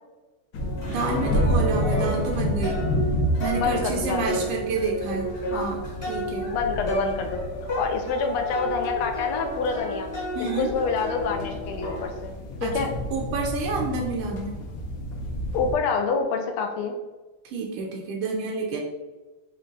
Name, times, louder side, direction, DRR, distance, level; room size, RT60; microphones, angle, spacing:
sound 1, 0.5-15.8, equal, 70° left, 1.2 m, -30 dB
sound 2, 0.6-12.0, equal, 40° left, 0.9 m, -32 dB
voice 1, 0.9-2.8 3.4-6.5 10.3-10.7 12.6-12.7 13.1-14.6 17.4-18.8, right 4 dB, 85° right, 0 dB, 1.5 m, -29 dB
voice 2, 3.6-4.2 5.5-5.7 6.5-7.4 7.8-10.1 10.6-12.9 15.5-17.0, left 5 dB, 90° left, 5 dB, 1.5 m, -27 dB
5.0 x 2.2 x 3.8 m, 1.2 s
omnidirectional pair, 2.4 m